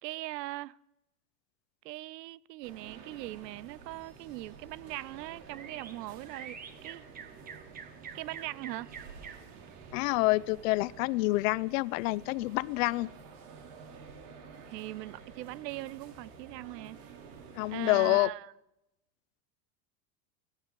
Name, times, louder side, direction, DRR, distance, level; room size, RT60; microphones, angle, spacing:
voice 1, 0.0-0.8 1.8-7.1 8.1-8.9 14.7-17.0 17.7-18.5, right 18 dB, 90° right, 0.6 m, -40 dB
sound 1, 2.6-18.2, right 5 dB, 65° right, 2.9 m, -51 dB
sound 2, 4.8-11.4, right 6 dB, 20° right, 0.8 m, -50 dB
voice 2, 9.9-13.1 17.6-18.3, left 21 dB, 55° left, 0.5 m, -27 dB
16.0 x 14.0 x 4.6 m
supercardioid pair, 150°, 48 cm